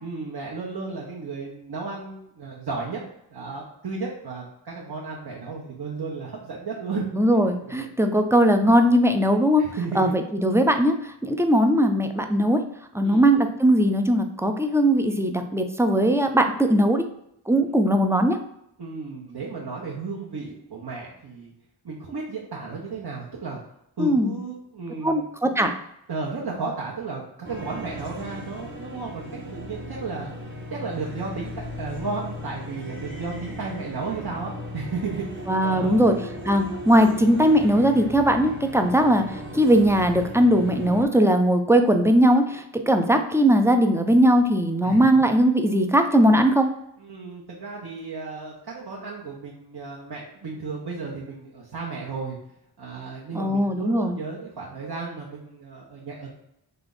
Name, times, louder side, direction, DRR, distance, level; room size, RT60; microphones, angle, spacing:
voice 1, 0.0-3.0 3.3-7.0 7.6-7.9 9.6-10.1 13.0-13.2 17.7-17.8 18.8-21.5 21.8-23.6 24.0-25.2 26.1-29.2 29.5-30.3 30.7-36.0 44.8-45.2 47.0-52.4 52.8-56.3, right 4 dB, 55° right, -4 dB, 0.9 m, -34 dB
voice 2, 7.1-9.7 10.0-12.6 12.9-17.1 17.5-18.4 24.0-24.3 25.0-25.7 35.5-36.1 36.4-46.7 53.3-54.2, equal, 5° right, 6 dB, 0.3 m, -19 dB
sound 1, 27.4-41.1, left 1 dB, 25° right, 0.9 m, -37 dB
3.3 x 2.5 x 3.8 m, 0.78 s
cardioid pair, 40°, 46 cm